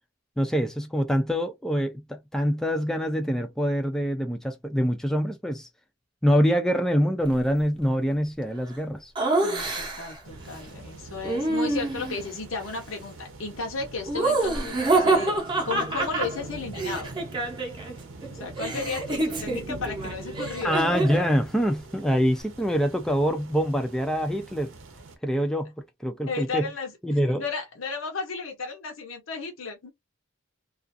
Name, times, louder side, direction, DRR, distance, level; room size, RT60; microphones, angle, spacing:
voice 1, 0.4-5.7 6.2-9.1 20.6-24.7 25.2-25.7 26.0-26.7 27.0-27.4, equal, 5° left, 0.4 m, -25 dB
Laughter, 9.2-10.2 11.2-12.3 14.1-17.9 18.2-21.3, right 2 dB, 25° right, 0.7 m, -27 dB
voice 2, 9.4-17.1 18.3-20.8 26.3-29.9, left 4 dB, 75° left, 0.7 m, -34 dB
sound 1, 10.2-25.2, right 2 dB, 75° right, 0.8 m, -44 dB
2.4 x 2.4 x 2.5 m
head